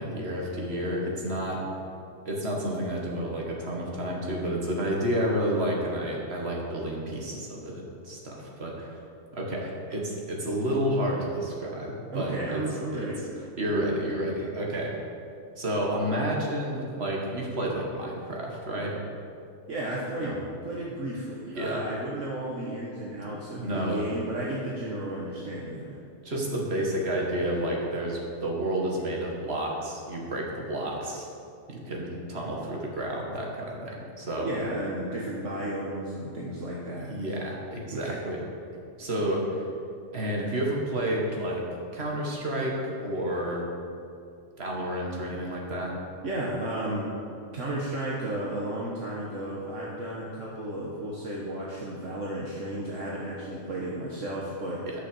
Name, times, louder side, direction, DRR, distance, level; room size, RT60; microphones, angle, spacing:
voice 1, 0.0-1.6 2.3-9.0 9.3-12.6 12.9-13.1 13.6-14.9 15.6-19.0 20.2-20.4 21.6-21.8 23.5-24.0 26.2-31.3 31.7-34.5 37.0-38.4 39.0-39.7 40.1-41.6 41.9-43.6 44.6-45.9 54.8-54.9, right 1 dB, 50° right, -2 dB, 2.1 m, -30 dB
voice 2, 12.1-13.2 19.7-26.0 34.4-37.1 37.9-38.2 46.2-47.1 47.5-54.8, right 1 dB, 65° right, -4 dB, 1.6 m, -33 dB
11.5 x 6.6 x 7.0 m, 2.5 s
omnidirectional pair, 1.4 m